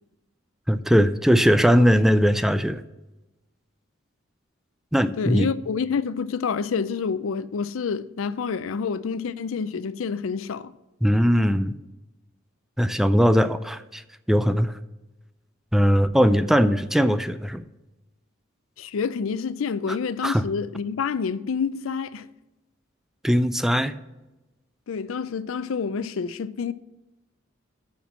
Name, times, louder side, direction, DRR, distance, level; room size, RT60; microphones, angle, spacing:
voice 1, 0.7-2.8 4.9-5.5 11.0-11.7 12.8-14.0 14.3-14.8 15.7-17.7 20.2-20.5 23.2-23.9, equal, ahead, 0.3 m, -20 dB
voice 2, 5.2-10.7 18.8-22.3 24.9-26.7, left 5 dB, 80° left, 0.4 m, -28 dB
7.1 x 5.9 x 7.4 m
head